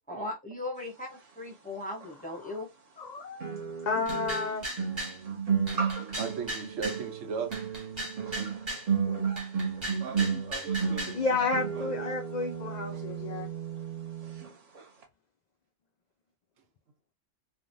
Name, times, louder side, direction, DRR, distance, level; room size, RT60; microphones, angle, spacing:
voice 1, 0.1-2.7, left 2 dB, 10° left, 0.5 m, -38 dB
sound 1, 2.0-2.1 3.4-14.5 14.7-15.0, right 6 dB, 45° right, 0.5 m, -33 dB
voice 2, 3.0-3.5 3.9-4.7 9.1-9.3 11.1-13.5, left 4 dB, 85° left, 0.3 m, -31 dB
sound 2, 4.1-5.2 5.7-7.0 7.5-8.9 9.4-11.2, right 1 dB, 25° right, 1.3 m, -37 dB
voice 3, 6.2-7.5 10.0-11.1, right 6 dB, 80° right, 1.0 m, -37 dB
3.2 x 2.1 x 2.5 m
omnidirectional pair, 1.3 m